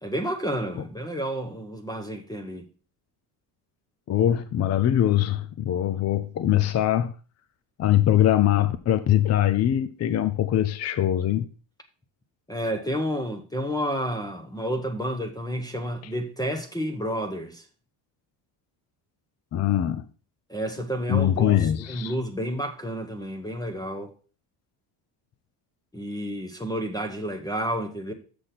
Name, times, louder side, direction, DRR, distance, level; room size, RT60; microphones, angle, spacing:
voice 1, 0.0-2.7 12.5-17.6 20.5-24.1 25.9-28.1, equal, 10° left, 0.9 m, -30 dB
voice 2, 4.1-7.1 7.8-11.4 19.5-20.1 21.1-22.1, left 11 dB, 40° left, 0.6 m, -22 dB
6.9 x 6.3 x 5.7 m
cardioid pair, 135°, 42 cm